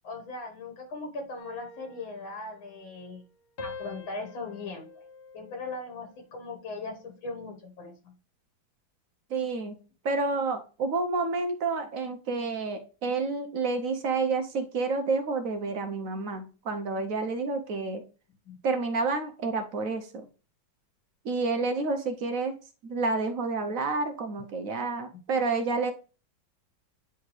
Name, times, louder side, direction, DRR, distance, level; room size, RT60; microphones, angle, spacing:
voice 1, 0.0-3.2 3.6-4.9 5.3-8.1 18.5-18.6, left 3 dB, 90° left, 3 dB, 2.1 m, -39 dB
sound 1, 1.4-3.3 3.6-6.1 6.6-7.0, left 3 dB, 45° left, 0.9 m, -46 dB
voice 2, 9.3-9.8 10.0-18.0 18.6-20.3 21.2-22.5 22.8-25.9, right 3 dB, 65° right, 6 dB, 0.9 m, -29 dB
9.4 x 3.5 x 3.2 m, 0.35 s
omnidirectional pair, 2.1 m